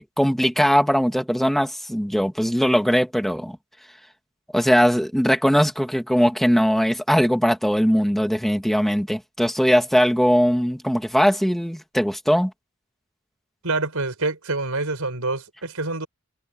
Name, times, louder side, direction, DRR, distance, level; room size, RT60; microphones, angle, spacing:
voice 1, 0.0-3.6 4.5-12.5, equal, ahead, 2.3 m, -20 dB
voice 2, 13.6-16.1, right 3 dB, 75° right, 4.8 m, -26 dB
head